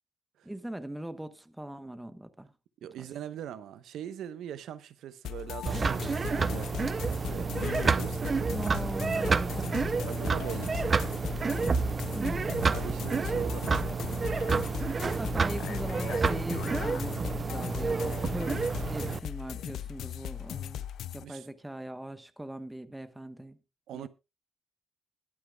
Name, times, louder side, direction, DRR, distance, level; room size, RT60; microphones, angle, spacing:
voice 1, 0.4-2.5 3.0-3.1 8.5-10.0 12.1-12.7 13.9-14.1 15.2-20.9 21.1-23.6 23.9-24.1, right 1 dB, 5° right, 1.0 m, -40 dB
voice 2, 2.8-6.7 7.0-7.5 7.9-8.6 10.1-11.0 12.7-14.2 21.2-21.5 23.9-24.1, right 10 dB, 85° right, 1.0 m, -41 dB
sound 1, 5.2-21.2, left 11 dB, 75° left, 0.5 m, -38 dB
sound 2, 5.7-19.2, right 5 dB, 30° right, 0.6 m, -29 dB
21.0 x 8.6 x 2.3 m
cardioid pair, 150°, 0 cm